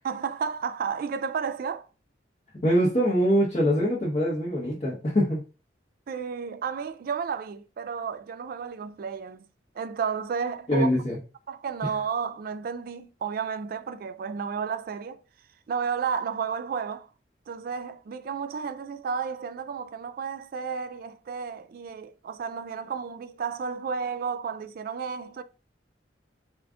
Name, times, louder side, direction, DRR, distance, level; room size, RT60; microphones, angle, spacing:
voice 1, 0.0-1.9 6.1-9.5 9.8-10.9 11.5-15.2 15.7-17.1 17.5-25.4, right 6 dB, 50° right, 0.3 m, -32 dB
voice 2, 2.6-5.4 10.7-11.2, equal, 35° left, 1.0 m, -23 dB
3.6 x 2.5 x 3.5 m
head